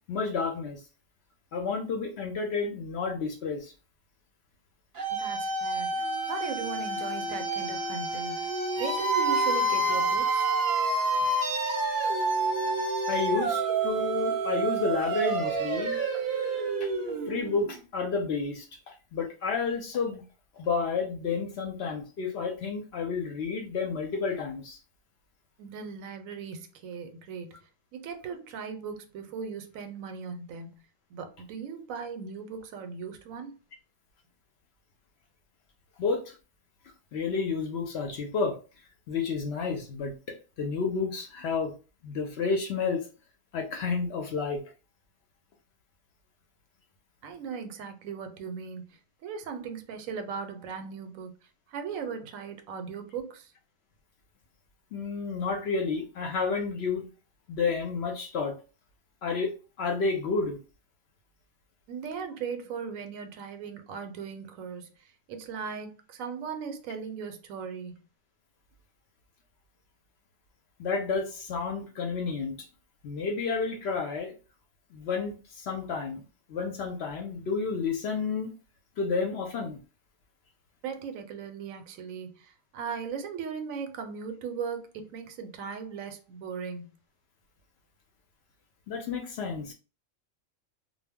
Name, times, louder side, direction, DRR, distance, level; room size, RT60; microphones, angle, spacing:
voice 1, 0.1-0.8 1.5-3.7 13.1-16.0 16.8-16.9 17.3-20.2 20.6-24.8 36.0-36.4 37.1-38.6 39.1-41.7 42.0-43.1 43.5-44.6 54.9-57.0 57.5-58.6 59.2-59.5 59.8-60.6 70.8-72.6 73.0-74.3 74.9-76.2 76.5-78.5 79.0-79.8 88.9-89.7, left 4 dB, 65° left, 0.7 m, -30 dB
sound 1, 5.0-17.8, right 3 dB, 50° right, 0.7 m, -28 dB
voice 2, 5.1-6.0 6.3-8.5 8.8-10.5 25.6-27.6 27.9-30.8 31.1-33.6 47.2-51.4 51.7-53.5 61.9-64.9 65.3-68.0 80.8-86.9, right 6 dB, 90° right, 1.0 m, -38 dB
2.2 x 2.0 x 3.4 m
omnidirectional pair, 1.4 m